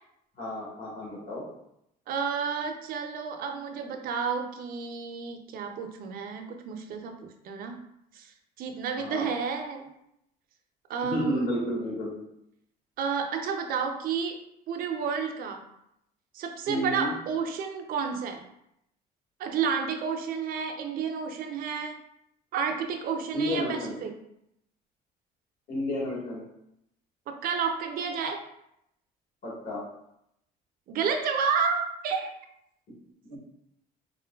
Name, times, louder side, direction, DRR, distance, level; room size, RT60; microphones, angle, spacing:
voice 1, 0.4-1.4 8.9-9.3 11.0-12.2 16.7-17.1 23.3-23.9 25.7-26.4 29.4-29.8 33.2-33.4, left 1 dB, 55° left, -5 dB, 1.4 m, -31 dB
voice 2, 2.1-7.8 8.1-8.3 8.6-9.9 10.9-11.5 13.0-14.4 14.7-15.6 16.3-18.4 19.4-22.0 22.5-24.1 27.3-28.4 30.9-32.3, right 6 dB, 60° right, 5 dB, 0.4 m, -31 dB
3.7 x 2.1 x 2.2 m, 0.79 s
cardioid pair, 110°, 17 cm